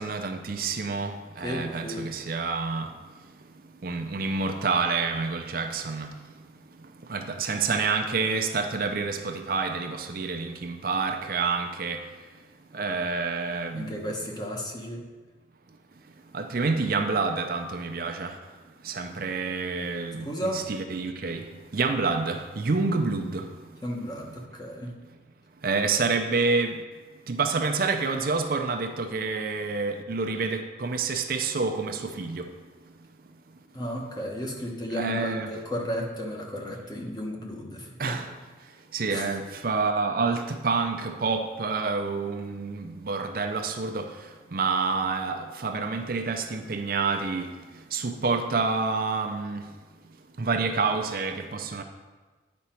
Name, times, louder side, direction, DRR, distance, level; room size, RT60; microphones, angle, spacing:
voice 1, 0.0-2.9 3.8-6.1 7.1-12.0 12.7-14.0 16.3-18.4 18.8-21.4 21.7-23.5 25.6-26.8 27.3-32.5 34.9-35.5 38.0-38.3 38.9-44.1 44.5-47.5 47.9-49.6 50.4-51.8, right 4 dB, 50° right, 5 dB, 0.5 m, -28 dB
voice 2, 1.4-2.1 13.7-15.0 20.2-20.6 23.8-24.9 33.7-38.2 39.1-39.3, equal, 20° left, 0 dB, 1.1 m, -33 dB
9.5 x 5.1 x 4.4 m, 1.3 s
head